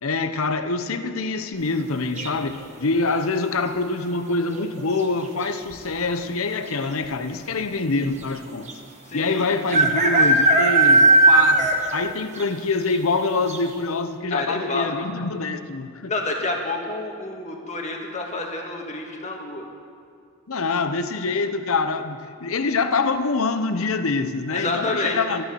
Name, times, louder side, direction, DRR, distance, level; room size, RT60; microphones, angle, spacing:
voice 1, 0.0-8.7 9.1-16.1 20.5-25.4, left 3 dB, 70° left, 10 dB, 0.8 m, -25 dB
sound 1, 2.2-2.6 4.5-4.8 5.1-5.2 5.4-6.0 6.7-6.8 7.0-7.1 8.7-8.8 9.7-12.0 12.4-12.5 12.9-13.0 13.5-13.6, right 2 dB, 35° right, 1.2 m, -17 dB
voice 2, 9.1-9.5 14.3-14.9 16.1-19.7 24.5-25.2, left 2 dB, 35° left, 1 dB, 1.8 m, -28 dB
12.0 x 11.5 x 6.9 m, 2.3 s
head